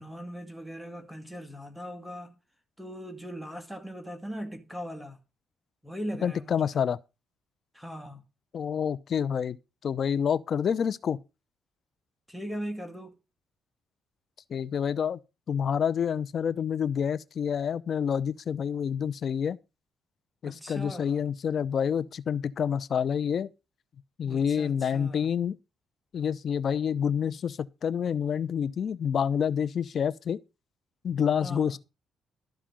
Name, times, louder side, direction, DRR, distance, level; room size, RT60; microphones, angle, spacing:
voice 1, 0.0-2.3 2.8-5.2 5.8-6.8 7.7-8.2 12.3-13.2 20.4-21.2 24.2-25.3 31.4-31.8, equal, ahead, 2.1 m, -39 dB
voice 2, 6.2-7.0 8.5-9.6 9.8-11.2 14.5-15.2 15.5-19.6 20.4-23.5 24.2-25.6 26.1-30.4 31.0-31.8, left 7 dB, 55° left, 0.7 m, -28 dB
13.0 x 4.9 x 7.6 m
cardioid pair, 90°, 0 cm